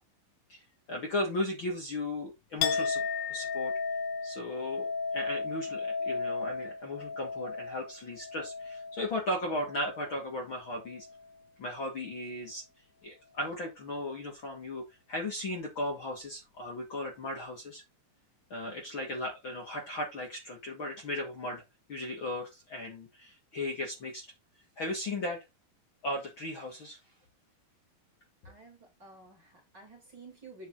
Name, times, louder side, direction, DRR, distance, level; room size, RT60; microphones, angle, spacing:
voice 1, 0.5-3.0 3.3-3.7 4.2-4.9 5.1-11.1 11.6-12.6 13.0-17.8 18.5-21.6 21.9-24.3 24.8-25.4 26.0-27.0, left 1 dB, 40° left, 2.6 m, -36 dB
Chink clink, 2.6-10.3 10.6-11.3, left 5 dB, 75° left, 2.5 m, -35 dB
voice 2, 28.4-30.7, right 2 dB, 30° right, 3.5 m, -51 dB
9.5 x 5.3 x 3.9 m
omnidirectional pair, 4.3 m